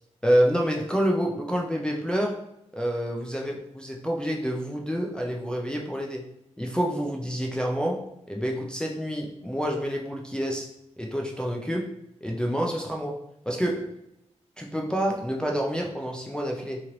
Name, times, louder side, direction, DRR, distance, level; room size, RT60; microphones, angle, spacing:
voice 1, 0.2-2.4 2.7-6.2 6.6-10.7 11.0-11.9 12.2-13.2 13.5-13.9 14.6-16.8, equal, 5° left, -1 dB, 0.4 m, -28 dB
3.0 x 2.9 x 3.7 m, 0.82 s
wide cardioid pair, 170°, 12 cm